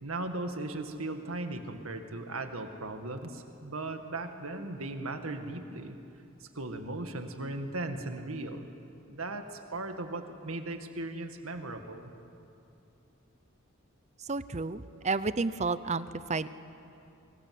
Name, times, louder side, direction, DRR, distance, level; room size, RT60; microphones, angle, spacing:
voice 1, 0.0-6.0 6.4-8.7 9.1-12.1, right 2 dB, 85° right, 6 dB, 2.0 m, -37 dB
voice 2, 14.2-16.5, right 3 dB, 35° right, 14 dB, 0.7 m, -31 dB
25.5 x 24.5 x 7.8 m, 2.7 s
head